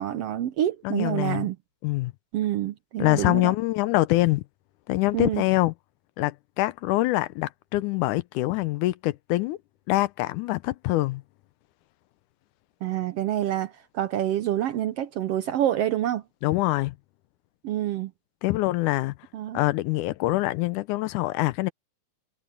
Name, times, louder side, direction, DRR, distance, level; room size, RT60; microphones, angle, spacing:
voice 1, 0.0-1.6 2.3-3.5 5.1-5.4 12.8-16.2 17.6-18.1 19.3-19.6, right 12 dB, 75° right, 1.4 m, -27 dB
voice 2, 0.8-1.5 1.8-2.1 3.0-4.4 4.9-5.7 6.2-9.6 9.9-11.2 16.4-16.9 18.4-19.1 19.5-21.7, left 18 dB, 85° left, 2.1 m, -24 dB
omnidirectional pair, 3.5 m